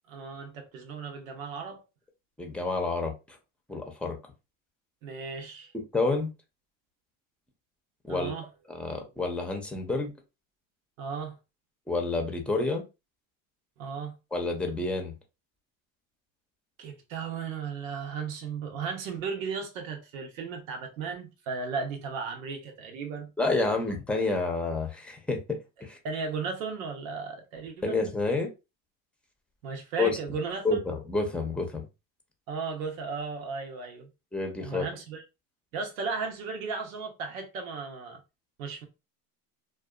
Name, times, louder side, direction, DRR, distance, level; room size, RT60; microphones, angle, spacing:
voice 1, 0.1-1.8 5.0-5.7 8.1-8.5 11.0-11.4 13.8-14.1 16.8-23.3 23.6-23.8 26.0-28.0 29.6-30.7 32.5-34.1 34.6-35.2 35.7-38.2 38.6-38.9, right 5 dB, 90° right, 0.8 m, -35 dB
voice 2, 2.4-3.1 3.7-4.2 5.7-6.3 8.0-8.3 8.7-10.1 11.9-12.8 14.3-15.1 23.4-26.0 27.8-28.5 30.0-30.2 30.6-31.9 34.3-34.9, left 3 dB, 5° left, 0.7 m, -29 dB
2.7 x 2.3 x 2.3 m
supercardioid pair, 90°, 39 cm